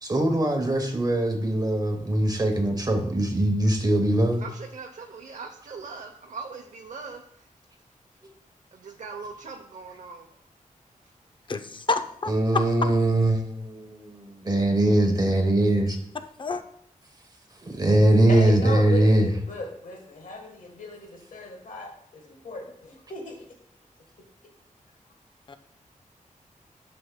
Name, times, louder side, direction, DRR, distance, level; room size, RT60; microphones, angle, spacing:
voice 1, 0.0-4.4 12.3-16.0 17.6-19.3, right 1 dB, 30° right, 4 dB, 0.9 m, -22 dB
voice 2, 4.4-7.5 8.7-10.3 11.0-11.1 12.8-12.9, right 4 dB, 65° right, 2 dB, 0.7 m, -40 dB
voice 3, 11.5-12.6 16.4-16.6 25.5-25.6, left 4 dB, 35° left, 9 dB, 0.5 m, -28 dB
voice 4, 18.3-23.4, left 3 dB, 70° left, 2 dB, 1.3 m, -36 dB
11.0 x 6.8 x 2.2 m, 0.66 s
wide cardioid pair, 165°, 14 cm